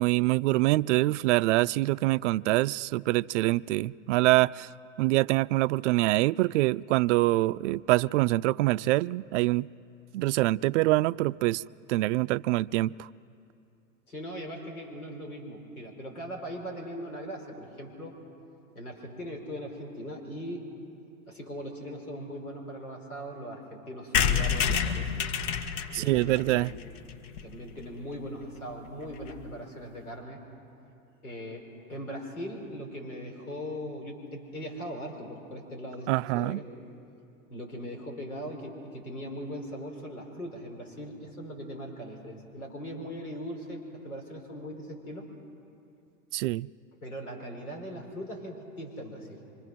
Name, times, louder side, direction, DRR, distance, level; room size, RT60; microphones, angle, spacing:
voice 1, 0.0-4.7 5.0-9.7 10.1-11.6 11.9-13.1 25.9-26.7 36.1-36.6 46.3-46.7, right 18 dB, 60° right, 0.5 m, -25 dB
voice 2, 14.1-18.1 18.7-20.6 21.3-25.1 25.9-26.7 27.4-30.4 31.2-36.1 36.3-36.6 37.5-45.3 47.0-49.4, equal, 90° left, 5.0 m, -40 dB
sound 1, 24.1-27.8 28.3-28.4 28.5-28.6 28.9-29.0 29.2-29.4, left 7 dB, 60° left, 1.7 m, -29 dB
25.0 x 25.0 x 6.2 m
hypercardioid pair, 95°, 43 cm